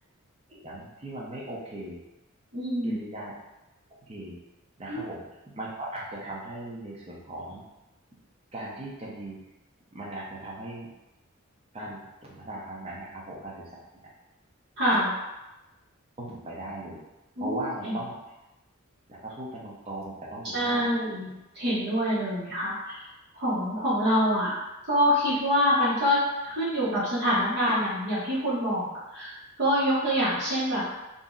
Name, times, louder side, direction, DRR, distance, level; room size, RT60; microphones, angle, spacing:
voice 1, 0.5-2.0 2.8-3.3 4.1-4.4 4.8-5.2 5.5-7.6 8.5-9.4 9.9-10.9 11.7-14.1 16.2-17.0 17.4-18.2 19.1-20.9, right 1 dB, 30° right, -5 dB, 0.6 m, -38 dB
voice 2, 2.5-2.9 4.9-5.0 14.8-15.1 17.4-18.0 20.5-23.0 23.3-24.6 24.9-28.9 29.1-30.8, equal, 55° right, -10 dB, 0.9 m, -26 dB
2.6 x 2.0 x 3.6 m, 1.0 s
head